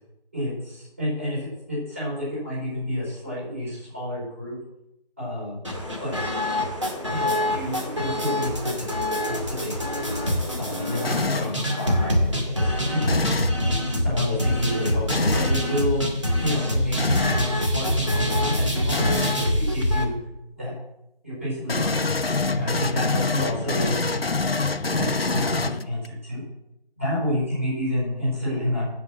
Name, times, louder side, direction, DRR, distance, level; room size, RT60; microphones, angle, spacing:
voice 1, 0.3-4.6 5.2-5.5 6.0-6.2 7.1-10.1 10.6-13.2 14.0-16.0 16.4-20.2 20.6-20.7 21.2-24.1 24.9-26.4 27.0-28.8, left 1 dB, 15° right, -8 dB, 4.5 m, -29 dB
sound 1, 5.6-20.0, left 1 dB, 30° right, 1.9 m, -25 dB
sound 2, 11.0-11.6 13.0-13.6 15.1-15.6 17.0-17.5 18.9-19.4 21.7-26.1, left 3 dB, 70° left, 0.9 m, -25 dB
11.0 x 8.0 x 7.7 m, 0.85 s
figure-of-eight pair, 180°, 31 cm